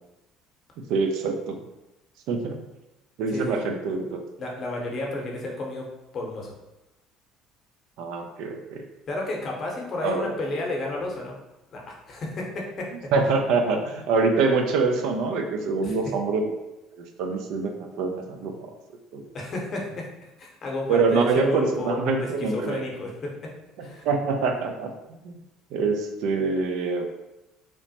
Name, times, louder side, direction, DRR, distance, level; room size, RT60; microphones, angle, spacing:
voice 1, 0.8-1.5 2.3-2.6 3.2-4.2 8.0-8.9 10.0-10.3 13.1-16.5 16.9-18.7 19.1-19.2 20.9-22.8 24.1-25.3 25.7-27.1, right 4 dB, 70° right, 4 dB, 0.3 m, -25 dB
voice 2, 3.3-3.7 4.4-5.9 6.1-6.5 9.1-11.4 11.7-13.1 15.8-16.0 19.3-20.1 20.4-22.3 22.5-23.3 23.8-24.1, left 2 dB, 45° left, -1 dB, 0.7 m, -32 dB
3.0 x 2.0 x 2.7 m, 0.97 s
hypercardioid pair, 75°, 0 cm